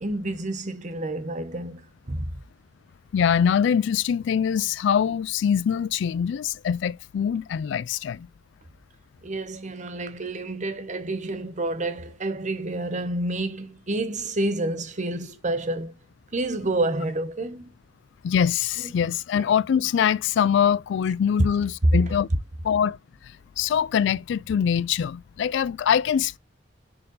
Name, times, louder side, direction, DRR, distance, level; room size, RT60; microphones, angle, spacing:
voice 1, 0.0-2.3 9.2-15.9 16.3-17.7 18.8-18.9 19.3-19.4, right 2 dB, 40° right, 0.9 m, -29 dB
voice 2, 3.1-8.3 18.2-22.3 22.6-23.0 23.6-26.4, left 8 dB, 70° left, 0.3 m, -23 dB
6.5 x 4.4 x 3.9 m
head